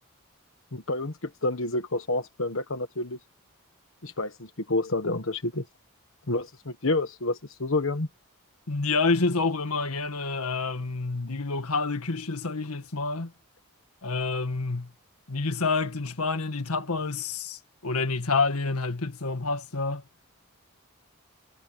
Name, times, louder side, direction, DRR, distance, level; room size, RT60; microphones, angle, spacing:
voice 1, 0.7-3.2 4.0-5.6 6.3-8.1, left 2 dB, 60° left, 1.4 m, -29 dB
voice 2, 8.7-13.3 14.0-14.9 15.3-20.0, left 3 dB, 90° left, 1.8 m, -28 dB
head